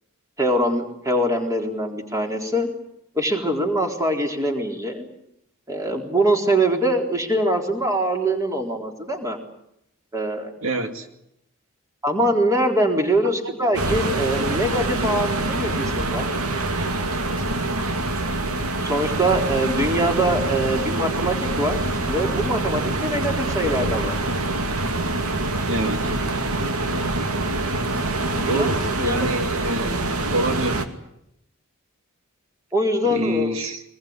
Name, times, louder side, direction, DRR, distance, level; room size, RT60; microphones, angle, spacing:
voice 1, 0.4-2.7 3.1-5.1 5.7-9.4 10.1-10.5 12.0-16.3 18.8-21.8 22.1-24.2 28.4-28.7 29.0-29.3 29.8-29.9 32.7-33.5, right 1 dB, 15° right, 2 dB, 4.0 m, -23 dB
voice 2, 10.6-11.1 25.7-26.1 28.5-30.0 30.3-30.8 33.0-33.8, right 1 dB, 65° right, 5 dB, 2.2 m, -26 dB
sound 1, 13.7-30.8, right 2 dB, 80° right, 2.6 m, -25 dB
24.5 x 21.5 x 9.7 m, 0.79 s
head